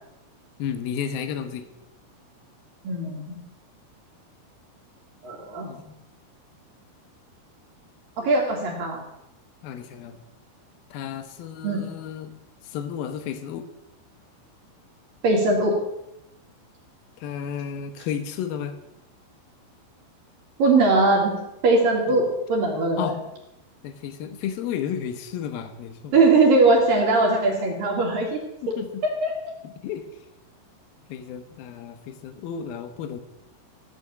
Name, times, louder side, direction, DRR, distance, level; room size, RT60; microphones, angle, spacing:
voice 1, 0.6-1.7 5.7-6.0 9.6-10.2 10.9-12.3 12.6-13.7 17.2-18.8 22.1-22.2 23.0-23.2 23.8-26.2 28.6-29.0 29.6-30.1 31.1-33.2, left 8 dB, 70° left, 8 dB, 2.4 m, -32 dB
voice 2, 2.8-3.4 5.2-5.7 8.2-9.0 11.6-11.8 15.2-15.8 20.6-21.3 21.6-23.1 26.1-28.4 28.7-28.8 29.2-29.3, right 3 dB, 55° right, 0 dB, 3.2 m, -20 dB
15.5 x 7.0 x 8.4 m, 0.87 s
omnidirectional pair, 5.6 m